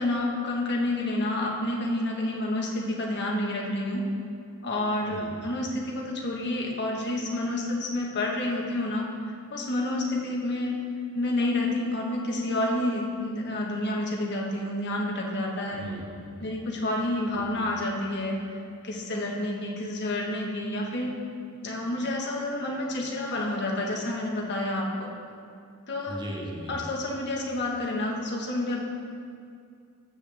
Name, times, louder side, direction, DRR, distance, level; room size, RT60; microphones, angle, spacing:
voice 1, 0.0-4.1 4.6-10.8 11.1-15.8 16.4-18.4 18.8-21.1 21.6-25.1 25.9-26.1 26.7-28.8, left 1 dB, 50° left, -1 dB, 1.5 m, -29 dB
voice 2, 5.1-5.5 15.8-16.5 17.3-17.7 26.1-26.9, equal, 20° right, -1 dB, 1.2 m, -39 dB
14.5 x 7.9 x 3.5 m, 2.4 s
head